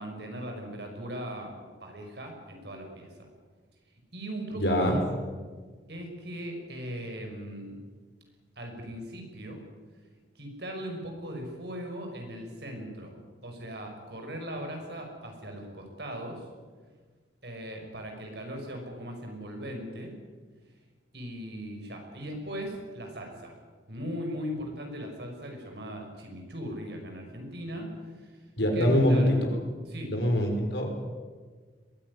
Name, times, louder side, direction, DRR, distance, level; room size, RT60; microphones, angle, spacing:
voice 1, 0.0-3.1 4.1-5.0 5.9-7.8 8.6-9.6 10.4-13.2 13.4-16.4 17.4-20.1 21.1-23.6 23.9-27.9 28.2-28.3 28.7-29.3 29.9-30.1, equal, 60° right, 3 dB, 5.6 m, -38 dB
voice 2, 4.6-4.9 28.6-29.2 30.1-30.9, equal, 65° left, 3 dB, 5.2 m, -24 dB
22.0 x 16.5 x 9.7 m, 1.5 s
head